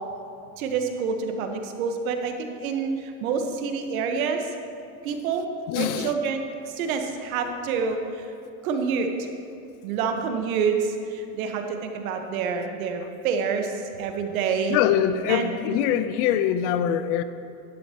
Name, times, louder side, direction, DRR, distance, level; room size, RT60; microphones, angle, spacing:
voice 1, 0.6-4.4 5.0-5.5 5.7-6.4 6.7-8.3 8.6-9.1 9.8-13.7 14.0-14.8 15.3-15.8, right 5 dB, 75° right, 1.3 m, -27 dB
voice 2, 5.7-6.1 14.7-17.2, left 10 dB, 60° left, 0.6 m, -23 dB
11.5 x 11.0 x 2.9 m
supercardioid pair, 125°, 42 cm